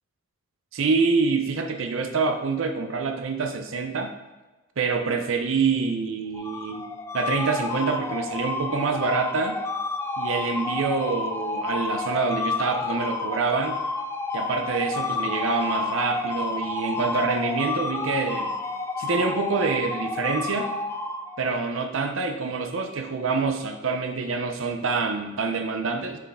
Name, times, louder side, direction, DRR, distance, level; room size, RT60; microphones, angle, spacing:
voice 1, 0.7-4.1 4.8-6.9 7.1-9.6 10.2-13.8 14.3-18.5 19.0-20.7 21.4-26.2, right 4 dB, 70° right, 5 dB, 0.6 m, -26 dB
sound 1, 6.3-21.6, left 3 dB, 15° left, 0.4 m, -30 dB
7.2 x 4.6 x 3.6 m, 1.2 s
head